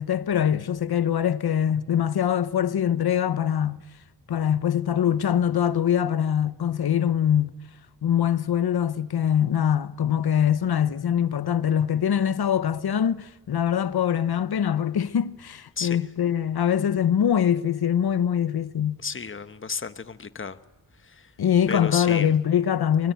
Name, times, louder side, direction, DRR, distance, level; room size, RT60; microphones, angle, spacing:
voice 1, 0.0-3.8 4.3-7.6 8.0-19.0 21.4-23.1, left 9 dB, 90° left, 0.8 m, -23 dB
voice 2, 15.8-16.1 19.0-20.6 21.0-21.3 21.7-22.3, left 5 dB, 35° left, 0.9 m, -33 dB
23.5 x 21.5 x 9.2 m
wide cardioid pair, 120°, 37 cm